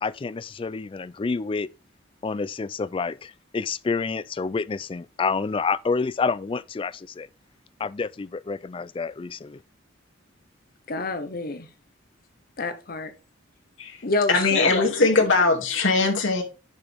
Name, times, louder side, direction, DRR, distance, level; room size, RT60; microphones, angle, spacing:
voice 1, 0.0-1.7 2.2-7.3 7.8-9.6, left 4 dB, 25° left, 0.3 m, -28 dB
voice 2, 10.9-11.7 12.6-13.1 14.0-15.3, left 2 dB, 50° left, 1.0 m, -28 dB
voice 3, 14.3-16.4, left 3 dB, 80° left, 2.3 m, -21 dB
10.5 x 5.0 x 3.4 m
head